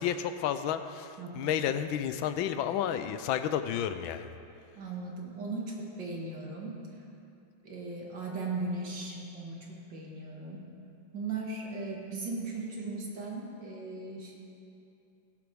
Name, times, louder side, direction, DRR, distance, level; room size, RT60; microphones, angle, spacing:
voice 1, 0.0-4.2, left 9 dB, 85° left, 10 dB, 1.4 m, -31 dB
voice 2, 1.2-1.5 4.8-6.8 7.6-10.7 11.1-14.4, right 3 dB, 65° right, -2 dB, 2.4 m, -38 dB
17.0 x 11.0 x 3.5 m, 2.7 s
omnidirectional pair, 2.1 m